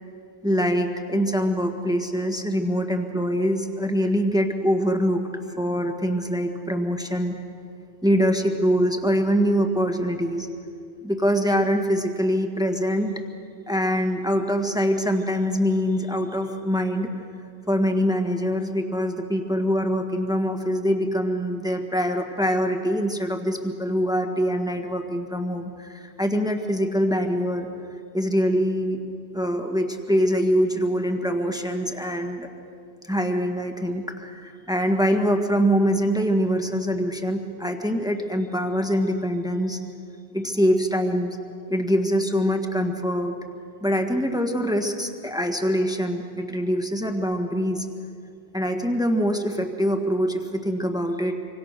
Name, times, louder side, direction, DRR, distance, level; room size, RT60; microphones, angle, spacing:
voice 1, 0.4-5.2 5.6-7.4 8.0-10.5 11.0-13.1 13.7-17.1 17.7-27.7 28.1-29.0 29.3-32.5 33.1-39.8 40.3-41.4 41.7-43.3 43.8-47.8 48.5-51.3, equal, 5° right, 4 dB, 1.6 m, -24 dB
25.5 x 25.5 x 6.6 m, 2.5 s
omnidirectional pair, 1.1 m